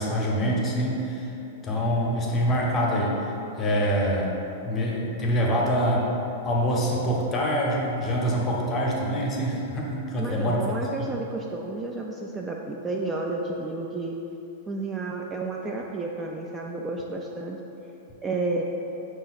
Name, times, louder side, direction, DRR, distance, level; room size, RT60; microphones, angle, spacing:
voice 1, 0.0-1.3 1.6-3.1 3.6-4.3 4.6-6.1 6.4-10.6 11.0-11.1, equal, 25° left, -2 dB, 0.8 m, -25 dB
voice 2, 10.2-14.2 14.7-17.6 18.2-18.6, right 3 dB, 15° right, -1 dB, 0.3 m, -31 dB
5.3 x 2.3 x 4.1 m, 3.0 s
hypercardioid pair, 120°, 0 cm